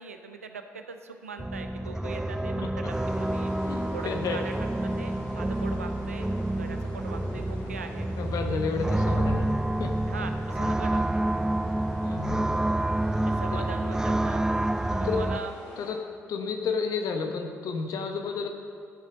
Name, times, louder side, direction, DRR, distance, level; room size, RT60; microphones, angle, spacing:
voice 1, 0.0-3.5 3.9-4.5 4.8-8.2 10.1-11.1 13.3-14.4 15.0-15.5, right 5 dB, 85° right, 7 dB, 0.5 m, -41 dB
sound 1, 1.4-15.4, right 1 dB, 10° right, 0.4 m, -28 dB
sound 2, 2.9-15.9, left 1 dB, 75° left, 2.3 m, -47 dB
voice 2, 3.6-4.4 8.2-9.5 9.8-9.9 12.0-12.8 15.0-15.2 15.8-16.0 16.3-18.5, left 5 dB, 55° left, 5 dB, 1.1 m, -31 dB
11.0 x 7.5 x 6.2 m, 2.3 s
figure-of-eight pair, 45°, 7 cm